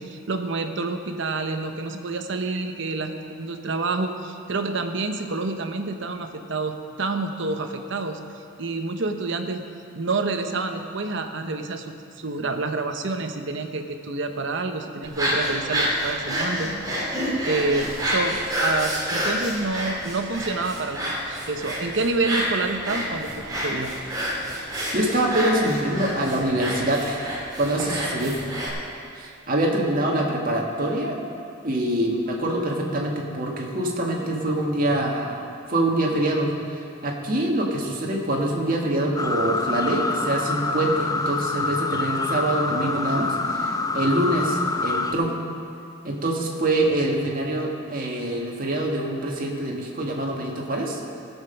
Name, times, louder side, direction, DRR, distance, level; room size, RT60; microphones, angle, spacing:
voice 1, 0.0-8.2 8.6-9.6 9.9-16.7 17.4-23.9, right 3 dB, 65° right, 6 dB, 0.9 m, -28 dB
sound 1, 15.0-28.7, equal, 20° right, 2.3 m, -28 dB
voice 2, 24.9-28.3 29.1-31.2 31.6-35.4 35.7-36.5 37.0-45.3 46.0-51.0, right 1 dB, 45° right, -1 dB, 1.8 m, -25 dB
sound 2, 39.2-45.1, left 3 dB, 20° left, 0.4 m, -26 dB
17.0 x 7.4 x 5.7 m, 2.4 s
head